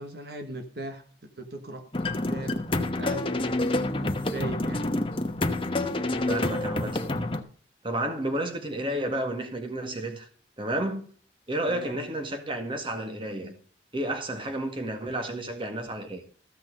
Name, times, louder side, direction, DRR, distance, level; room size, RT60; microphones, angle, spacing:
voice 1, 0.0-1.9 2.3-2.7 2.9-3.4 4.3-4.9 11.7-12.0, right 2 dB, 60° right, 1.5 m, -38 dB
sound 1, 1.9-7.4, left 2 dB, 30° left, 1.0 m, -28 dB
voice 2, 6.3-7.0 7.8-10.3 10.6-11.0 11.5-13.6 13.9-16.2, right 1 dB, 30° right, 1.9 m, -31 dB
14.5 x 6.1 x 5.4 m
head